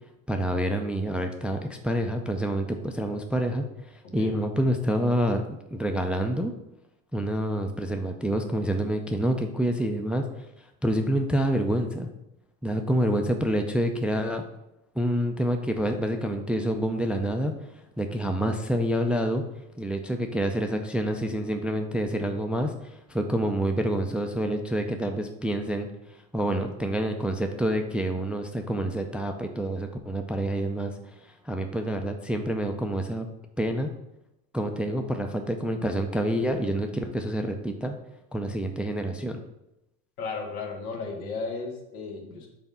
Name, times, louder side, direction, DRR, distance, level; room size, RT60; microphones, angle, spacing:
voice 1, 0.3-3.7 4.1-5.4 5.7-6.5 7.1-10.2 10.8-12.1 12.6-14.4 15.0-17.5 18.0-19.4 19.8-25.9 26.3-30.9 31.2-33.3 33.6-33.9 34.5-37.9 38.3-39.4, equal, 5° right, 5 dB, 0.3 m, -27 dB
voice 2, 4.0-4.4 40.2-42.5, left 4 dB, 90° left, 2 dB, 1.8 m, -35 dB
5.9 x 4.1 x 5.4 m, 0.87 s
supercardioid pair, 110°, 42 cm